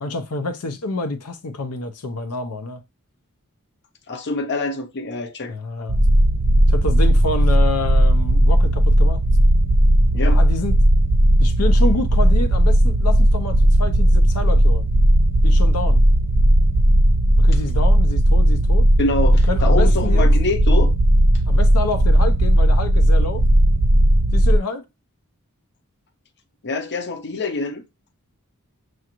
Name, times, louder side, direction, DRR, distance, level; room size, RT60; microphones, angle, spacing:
voice 1, 0.0-2.8 5.5-6.0 6.7-9.2 10.3-10.8 11.4-14.9 15.4-16.0 17.4-18.9 19.5-20.3 21.5-23.4 24.3-24.8, left 2 dB, 90° left, 0.6 m, -28 dB
voice 2, 4.1-5.5 10.1-10.4 19.0-20.9 26.6-27.8, left 2 dB, 50° left, 0.6 m, -25 dB
sound 1, 5.9-24.6, right 1 dB, 70° right, 0.5 m, -16 dB
6.3 x 2.4 x 2.9 m
head